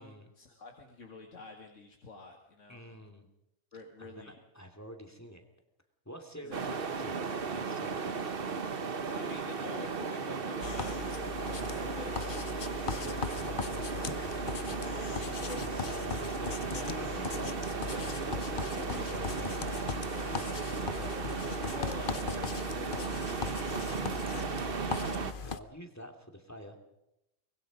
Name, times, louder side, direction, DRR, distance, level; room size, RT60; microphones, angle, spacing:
voice 1, 0.0-2.9 3.7-4.3 6.4-6.6 7.8-8.0 9.1-14.3 14.8-15.9 16.7-17.0 17.3-19.2 20.1-25.1, left 3 dB, 65° left, 1 dB, 2.3 m, -49 dB
voice 2, 2.7-3.3 4.0-5.5 6.1-8.1 12.0-12.9 14.4-14.8 15.2-15.3 15.6-17.4 18.7-20.2 25.0-26.8, equal, 10° left, 5 dB, 2.5 m, -49 dB
sound 1, 6.5-25.3, right 5 dB, 45° right, 1.2 m, -36 dB
sound 2, 10.6-25.6, left 5 dB, 45° left, 0.9 m, -38 dB
24.5 x 21.0 x 5.3 m, 0.87 s
omnidirectional pair, 1.4 m